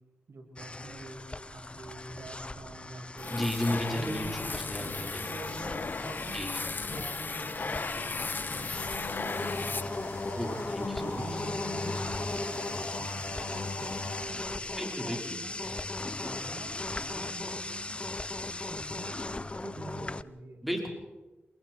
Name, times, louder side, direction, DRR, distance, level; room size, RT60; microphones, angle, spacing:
voice 1, 0.3-3.3 3.9-6.4 6.9-18.1 18.5-20.6, right 2 dB, 70° right, 0 dB, 7.5 m, -46 dB
sound 1, 0.6-20.2, left 2 dB, 25° left, 0.8 m, -38 dB
sound 2, 3.2-10.3, left 4 dB, 45° left, 1.3 m, -36 dB
voice 2, 3.3-5.2 6.3-6.7 10.4-11.2 14.8-15.4 20.6-20.9, equal, ahead, 1 dB, 5.2 m, -34 dB
sound 3, 8.7-14.2, left 3 dB, 75° left, 5.8 m, -38 dB
28.0 x 22.0 x 4.7 m, 1.2 s
cardioid pair, 65°, 4 cm